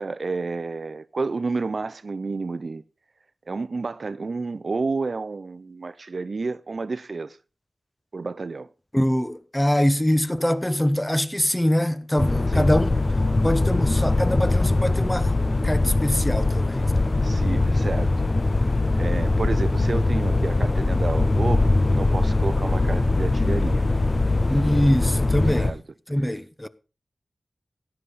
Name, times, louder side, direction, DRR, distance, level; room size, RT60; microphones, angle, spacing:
voice 1, 0.0-2.8 3.5-7.4 8.1-8.7 12.5-12.7 17.2-18.1 18.7-23.9 25.4-25.8 26.3-26.4, right 3 dB, 65° right, 0.6 m, -30 dB
voice 2, 8.9-12.9 13.4-15.3 15.6-16.9 24.5-25.7 26.1-26.7, equal, 10° left, 0.9 m, -23 dB
sound 1, 12.2-25.7, left 2 dB, 40° left, 0.9 m, -22 dB
13.0 x 10.0 x 4.1 m
cardioid pair, 50°, 0 cm